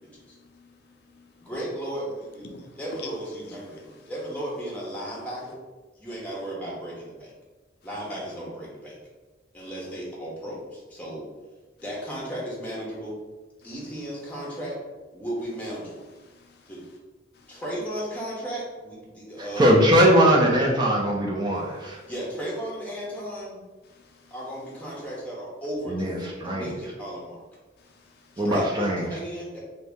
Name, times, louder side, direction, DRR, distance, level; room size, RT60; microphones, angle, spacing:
voice 1, 0.4-0.7 1.1-1.2 2.5-2.7 16.3-16.7 17.4-17.5 23.9-24.3 27.9-28.4, left 1 dB, 55° left, 0.4 m, -53 dB
voice 2, 1.4-5.6 5.9-7.3 7.8-8.9 9.5-11.3 11.8-13.2 13.6-14.8 15.1-16.0 16.7-16.8 17.5-19.8 22.1-23.6 24.3-26.1 26.4-27.4 28.4-29.6, right 1 dB, 10° left, 0.8 m, -35 dB
voice 3, 19.4-22.0 25.9-26.7 28.4-29.2, equal, 25° right, 0.4 m, -21 dB
2.7 x 2.6 x 3.5 m
head